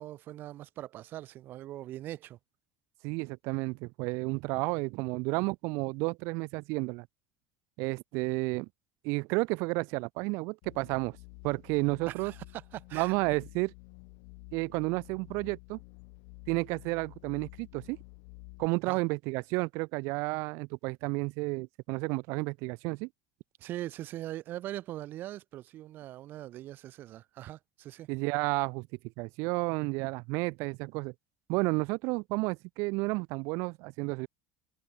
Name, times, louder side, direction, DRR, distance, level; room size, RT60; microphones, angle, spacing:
voice 1, 0.0-2.4 12.1-13.1 18.9-19.0 23.6-28.1, right 14 dB, 40° right, 3.7 m, -41 dB
voice 2, 3.0-7.1 7.8-8.7 9.0-11.2 11.4-12.3 12.9-13.7 14.5-15.8 16.5-18.0 18.6-23.1 28.1-28.9 29.2-31.1 31.5-34.3, right 27 dB, 60° right, 4.1 m, -31 dB
sound 1, 10.6-18.7, left 40 dB or more, 65° left, 7.7 m, -51 dB
cardioid pair, 165°, 5 cm